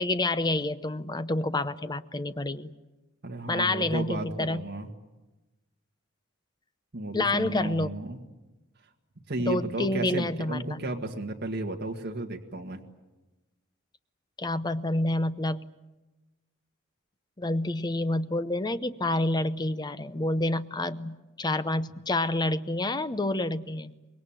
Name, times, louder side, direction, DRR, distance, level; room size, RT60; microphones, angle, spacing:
voice 1, 0.0-2.7 3.5-4.6 7.1-7.9 9.5-10.8 14.4-15.7 17.4-23.9, left 2 dB, 20° left, 13 dB, 0.8 m, -28 dB
voice 2, 3.2-4.9 6.9-8.2 9.3-12.8, right 2 dB, 50° right, 2 dB, 1.8 m, -33 dB
25.5 x 21.5 x 9.0 m, 1.1 s
head